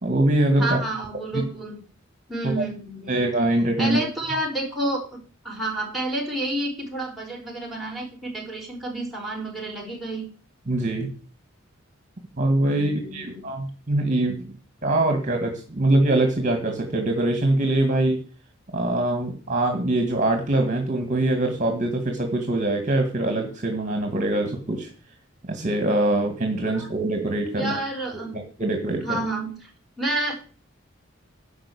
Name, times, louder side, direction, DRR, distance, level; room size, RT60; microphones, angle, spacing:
voice 1, 0.0-0.8 1.3-1.4 2.6-2.7 3.1-4.0 10.7-11.1 12.4-14.5 14.8-18.2 18.7-24.9 25.5-27.8 28.1-28.2 28.6-29.1, right 1 dB, 40° right, 5 dB, 1.9 m, -23 dB
voice 2, 0.6-1.8 2.3-3.2 3.8-5.0 5.4-10.3 12.7-13.5 26.7-26.9 27.5-28.4 29.0-29.7 30.0-30.3, right 1 dB, ahead, -4 dB, 5.0 m, -29 dB
11.5 x 5.6 x 8.6 m, 0.39 s
head